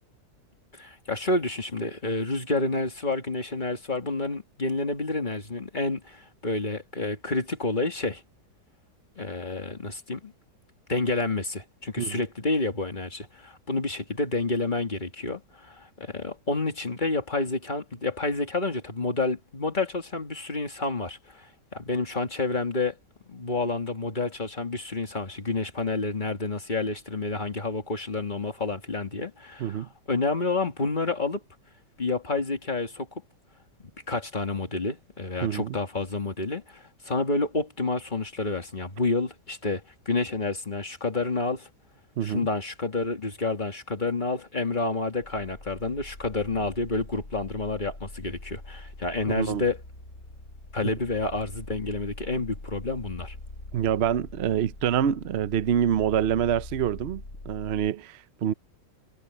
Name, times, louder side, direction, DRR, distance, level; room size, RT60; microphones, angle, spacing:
voice 1, 0.7-8.2 9.2-10.3 10.9-23.0 23.3-31.4 32.0-33.1 33.8-41.7 42.2-49.8 50.7-53.3, left 3 dB, 25° left, 2.3 m, -29 dB
voice 2, 35.4-35.8 42.2-42.5 49.3-49.6 50.8-50.9 53.7-58.5, right 9 dB, 65° right, 0.6 m, -26 dB
sound 1, 45.2-57.9, left 2 dB, 40° left, 4.3 m, -43 dB
omnidirectional pair, 1.9 m